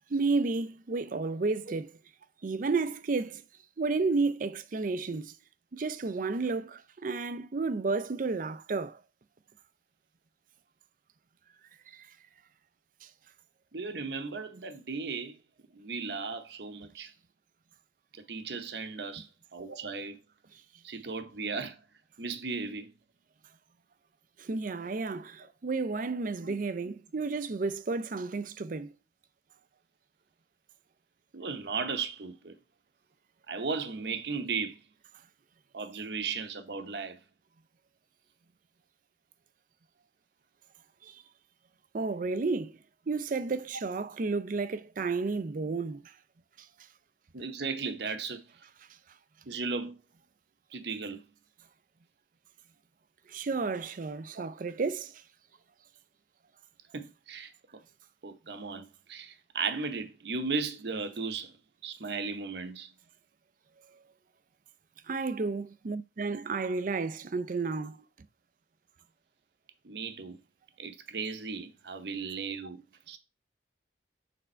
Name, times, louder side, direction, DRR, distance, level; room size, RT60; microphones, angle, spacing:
voice 1, 0.1-1.9 2.4-3.4 3.8-5.3 5.7-9.0 11.9-12.0 24.4-28.9 41.0-41.2 41.9-42.8 43.1-46.0 53.3-55.1 65.1-68.0, right 3 dB, 45° right, 0.5 m, -32 dB
voice 2, 13.7-15.4 15.7-17.1 18.1-19.3 19.5-20.2 20.8-21.8 22.2-22.9 26.4-26.6 26.8-26.9 31.3-32.6 33.5-34.8 35.7-37.2 47.3-48.5 49.5-50.0 50.7-51.2 54.3-54.5 56.9-57.8 58.2-61.5 61.8-62.9 69.8-70.4 70.8-73.2, right 4 dB, 65° right, 0.9 m, -36 dB
6.8 x 3.6 x 4.3 m
head